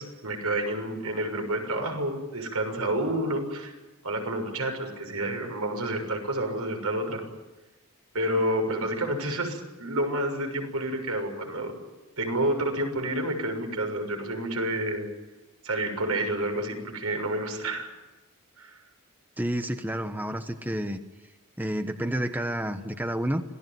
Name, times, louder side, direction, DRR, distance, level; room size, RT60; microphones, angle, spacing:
voice 1, 0.0-3.7 4.0-7.2 8.1-11.7 12.2-15.1 15.6-17.9 18.6-18.8, right 1 dB, 80° right, 4 dB, 6.7 m, -29 dB
voice 2, 19.4-21.0 21.6-23.4, right 1 dB, 10° right, 7 dB, 1.1 m, -30 dB
26.5 x 18.5 x 9.3 m, 1.1 s
head